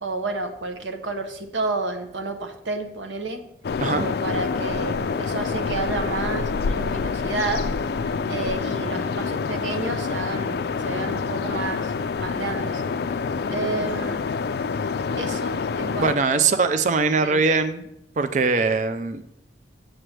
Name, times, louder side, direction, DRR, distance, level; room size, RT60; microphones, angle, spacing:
voice 1, 0.0-3.4 3.9-7.7 8.0-11.9 12.2-12.8 13.5-14.2 15.2-16.7 17.1-17.4, right 3 dB, 80° right, 6 dB, 0.9 m, -30 dB
sound 1, 3.6-16.2, left 5 dB, 55° left, 0.3 m, -27 dB
voice 2, 16.0-17.8 18.2-19.3, right 4 dB, 40° right, 9 dB, 0.4 m, -21 dB
7.7 x 7.4 x 3.2 m, 0.77 s
head